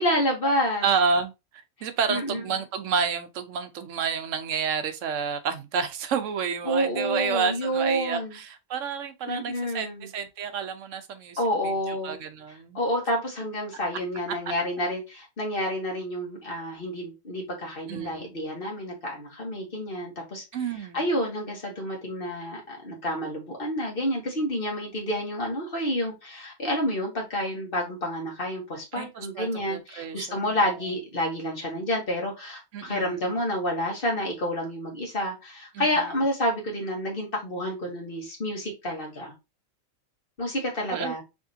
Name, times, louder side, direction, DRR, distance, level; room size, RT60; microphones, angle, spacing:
voice 1, 0.0-0.8 2.1-2.4 6.7-8.4 9.3-10.1 11.4-12.2 12.7-20.4 20.9-39.3 40.4-41.2, equal, 45° left, 1.8 m, -29 dB
voice 2, 0.8-1.3 1.8-12.8 17.9-18.2 20.5-21.0 28.9-30.6 32.7-33.4 35.7-36.2 40.9-41.1, right 6 dB, 70° right, 1.0 m, -30 dB
4.8 x 3.6 x 2.7 m
omnidirectional pair, 1.4 m